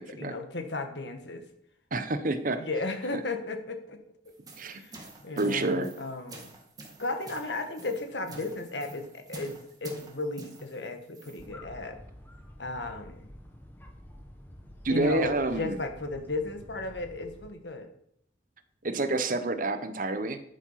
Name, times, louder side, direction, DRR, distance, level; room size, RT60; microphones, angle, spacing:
voice 1, 0.0-1.4 2.6-4.0 4.7-5.0 5.2-6.5 7.0-12.0 12.6-13.3 14.9-17.9, left 2 dB, 75° left, 5 dB, 1.8 m, -35 dB
voice 2, 1.9-2.7 4.6-4.8 5.4-5.9 14.8-15.8 18.8-20.4, right 2 dB, 50° right, 10 dB, 1.1 m, -28 dB
sound 1, 4.3-11.5, right 2 dB, 20° right, 2.3 m, -48 dB
sound 2, 11.4-17.5, equal, 10° left, 1.7 m, -49 dB
12.5 x 7.5 x 5.8 m, 0.70 s
head